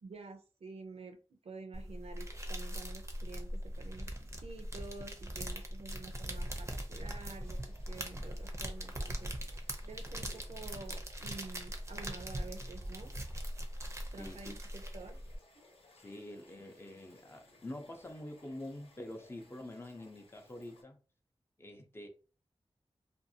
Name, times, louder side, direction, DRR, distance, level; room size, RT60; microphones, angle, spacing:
voice 1, 0.0-1.2 1.4-13.1 14.1-15.2, right 3 dB, 75° right, 0.5 m, -49 dB
sound 1, 1.7-15.4, equal, 25° right, 0.5 m, -41 dB
sound 2, 6.9-20.8, left 2 dB, 65° left, 0.9 m, -63 dB
voice 2, 14.2-14.5 15.9-21.0 21.6-22.1, left 1 dB, 25° left, 0.5 m, -46 dB
2.5 x 2.3 x 2.7 m
wide cardioid pair, 95°, 11 cm